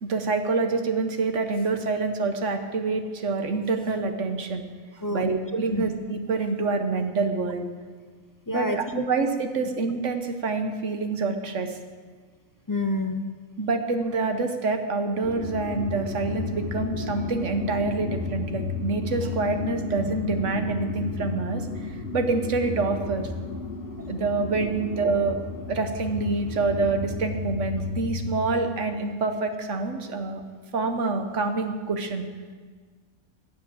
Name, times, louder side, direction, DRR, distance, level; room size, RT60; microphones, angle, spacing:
voice 1, 0.0-4.7 4.9-7.7 8.5-11.8 13.6-23.2 24.1-25.4 25.7-30.4 30.7-32.3, right 3 dB, 60° right, 7 dB, 1.4 m, -27 dB
voice 2, 5.0-5.3 5.7-5.8 8.5-9.1 12.7-13.2, left 2 dB, 25° left, 6 dB, 0.4 m, -28 dB
sound 1, 15.2-28.4, left 3 dB, 70° left, 1.9 m, -33 dB
16.0 x 7.5 x 7.6 m, 1.5 s
omnidirectional pair, 1.5 m